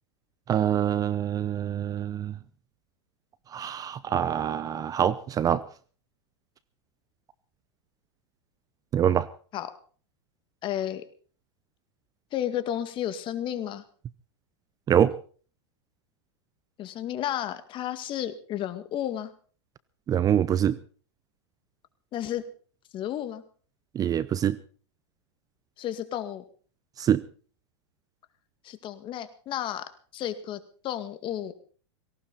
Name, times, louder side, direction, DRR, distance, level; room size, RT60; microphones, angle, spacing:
voice 1, 0.5-2.4 3.5-5.6 8.9-9.3 14.9-15.1 20.1-20.8 23.9-24.6 27.0-27.2, right 9 dB, 25° right, 18 dB, 0.7 m, -25 dB
voice 2, 10.6-11.0 12.3-13.8 16.8-19.3 22.1-22.4 22.9-23.4 25.8-26.4 28.6-31.5, left 11 dB, 35° left, 11 dB, 2.1 m, -32 dB
18.5 x 18.0 x 4.1 m, 0.42 s
hypercardioid pair, 115°, 15 cm